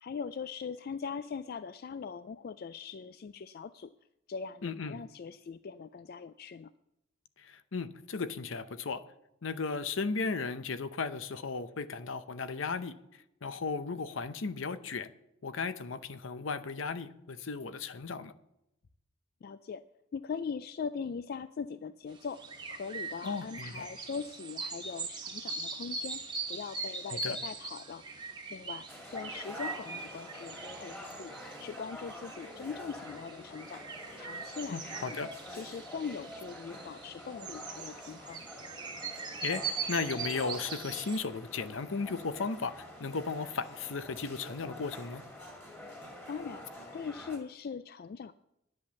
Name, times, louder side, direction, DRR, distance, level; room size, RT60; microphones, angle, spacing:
voice 1, 0.0-3.9 4.3-6.7 19.4-19.8 20.1-22.4 22.7-26.2 26.5-28.0 28.3-28.9 29.1-31.3 31.6-33.8 34.2-35.2 35.5-38.4 46.3-48.3, left 5 dB, 50° left, 13 dB, 0.3 m, -41 dB
voice 2, 4.6-5.0 7.4-9.0 9.4-12.9 13.4-15.1 15.4-18.3 23.2-23.9 27.1-27.4 34.7-35.3 39.4-45.2, left 4 dB, 70° left, 13 dB, 0.7 m, -35 dB
sound 1, 22.1-41.2, right 4 dB, 20° right, 1.3 m, -41 dB
sound 2, 28.9-47.4, left 1 dB, 10° left, 2.2 m, -47 dB
10.5 x 7.8 x 7.0 m, 0.83 s
head